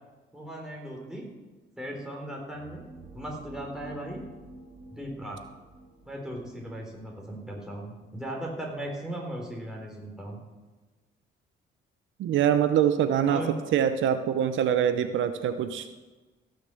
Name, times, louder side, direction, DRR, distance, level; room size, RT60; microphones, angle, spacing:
voice 1, 0.3-1.3 1.8-2.8 3.1-4.2 4.9-5.4 6.1-10.4 13.2-13.6, right 1 dB, 5° right, -1 dB, 4.0 m, -37 dB
sound 1, 2.4-8.3, right 2 dB, 30° right, 2.5 m, -49 dB
voice 2, 12.2-13.4 13.7-15.9, right 9 dB, 75° right, 10 dB, 0.7 m, -24 dB
16.0 x 6.7 x 7.0 m, 1.2 s
cardioid pair, 90°, 20 cm